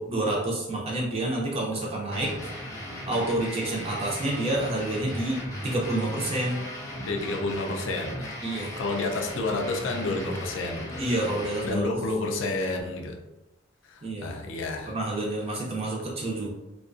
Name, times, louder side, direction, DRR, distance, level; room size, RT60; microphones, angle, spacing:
voice 1, 0.0-6.6 8.4-8.7 11.0-12.0 14.0-14.4 14.9-16.5, right 1 dB, 30° right, -3 dB, 0.5 m, -29 dB
sound 1, 2.1-11.7, equal, 15° left, 0.5 m, -37 dB
voice 2, 7.1-11.0 11.6-13.2 13.9-14.9, left 2 dB, 70° left, 2 dB, 0.4 m, -30 dB
2.3 x 2.2 x 2.5 m, 0.97 s
head